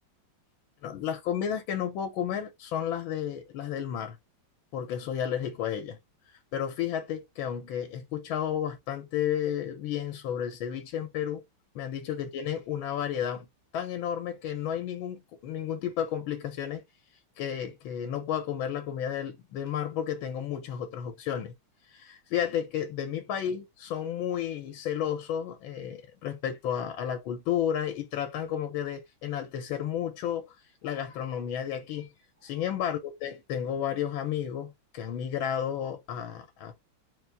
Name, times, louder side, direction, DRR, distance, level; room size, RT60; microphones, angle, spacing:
voice 1, 0.8-4.2 4.7-6.0 6.5-11.4 11.7-13.5 13.7-16.8 17.4-21.5 21.9-30.6 30.8-32.1 32.4-36.8, left 9 dB, 85° left, 1.6 m, -32 dB
4.2 x 2.5 x 4.5 m
omnidirectional pair, 2.2 m